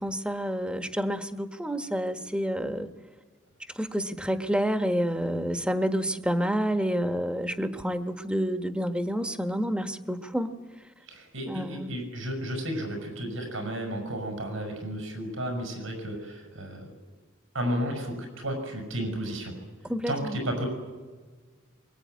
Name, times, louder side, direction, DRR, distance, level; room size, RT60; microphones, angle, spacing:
voice 1, 0.0-2.9 3.7-10.5 11.5-11.9 19.8-20.4, equal, 5° right, 8 dB, 1.3 m, -29 dB
voice 2, 11.1-16.9 17.5-19.5 20.1-20.7, equal, 85° right, 3 dB, 6.6 m, -33 dB
24.0 x 22.5 x 9.5 m, 1.4 s
head